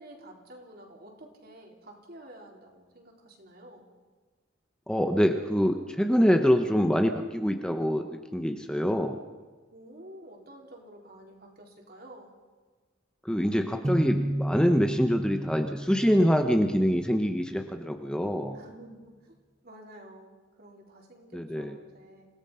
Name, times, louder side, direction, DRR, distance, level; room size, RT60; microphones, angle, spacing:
voice 1, 0.0-3.9 9.7-12.3 18.5-19.3 19.6-22.3, right 1 dB, 50° right, 0 dB, 4.5 m, -50 dB
voice 2, 4.9-8.0 8.3-9.2 13.3-18.6 21.3-21.7, equal, 5° left, 5 dB, 1.0 m, -25 dB
sound 1, 13.8-17.5, right 1 dB, 15° right, 0.6 m, -33 dB
28.0 x 18.0 x 5.7 m, 1.4 s
head